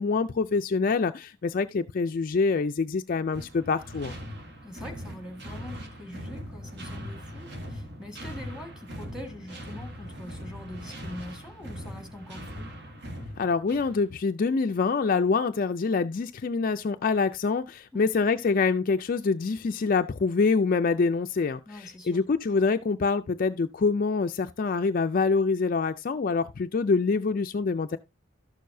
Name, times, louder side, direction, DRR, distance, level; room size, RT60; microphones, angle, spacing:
voice 1, 0.0-4.1 13.4-28.0, left 4 dB, 45° left, 0.4 m, -25 dB
sound 1, 3.3-14.1, equal, 55° right, 1.6 m, -40 dB
voice 2, 4.6-12.7 17.9-18.2 21.6-22.2, left 1 dB, 5° right, 1.6 m, -43 dB
12.5 x 6.6 x 2.6 m
head